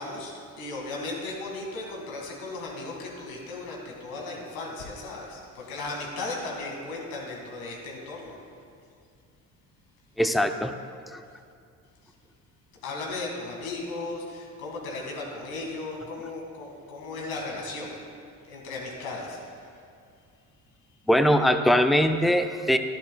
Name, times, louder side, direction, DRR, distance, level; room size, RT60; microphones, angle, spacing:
voice 1, 0.0-8.4 12.8-17.9 18.4-19.4, left 2 dB, 85° left, -1 dB, 1.9 m, -36 dB
voice 2, 10.2-10.7 11.1-11.2 21.1-22.8, equal, ahead, 7 dB, 0.4 m, -21 dB
11.5 x 11.0 x 2.2 m, 2.4 s
hypercardioid pair, 65°, 40 cm